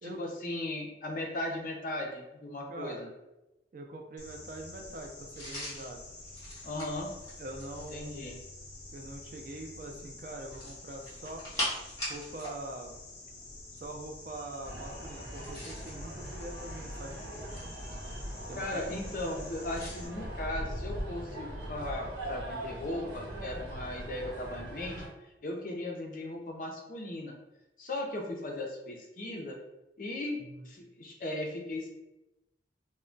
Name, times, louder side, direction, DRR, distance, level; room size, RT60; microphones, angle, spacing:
voice 1, 0.0-3.1 6.6-7.1 7.9-8.4 18.6-27.4 27.8-29.6 30.0-30.4 30.6-31.9, left 1 dB, 50° left, 1 dB, 0.5 m, -37 dB
voice 2, 2.7-3.1 3.7-6.0 7.4-8.4 8.9-11.5 12.1-12.9 13.7-17.2 18.5-18.7 30.4-30.7, right 1 dB, 50° right, 2 dB, 0.4 m, -43 dB
sound 1, 4.2-20.1, left 2 dB, 75° left, 0.9 m, -48 dB
sound 2, 5.3-8.0 10.4-12.6 12.8-13.0 15.2-16.0 16.7-17.8 19.7-20.0, equal, 20° left, 1.0 m, -40 dB
sound 3, 14.6-25.1, right 1 dB, 75° right, 0.8 m, -41 dB
2.2 x 2.1 x 3.7 m, 0.98 s
head